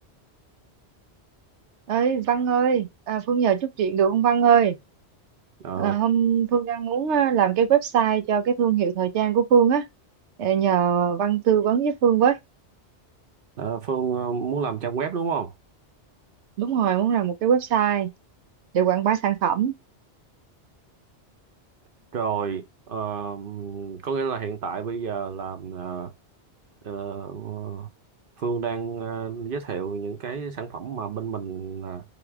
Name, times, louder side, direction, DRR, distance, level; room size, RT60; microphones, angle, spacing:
voice 1, 1.9-4.8 5.8-9.9 10.4-12.4 16.6-18.1 18.7-19.7, right 8 dB, 85° right, 1.0 m, -21 dB
voice 2, 5.6-5.9 13.6-15.5 22.1-26.1 26.8-27.9 28.4-32.0, right 6 dB, 55° right, 0.9 m, -30 dB
3.4 x 3.0 x 4.6 m
omnidirectional pair, 1.1 m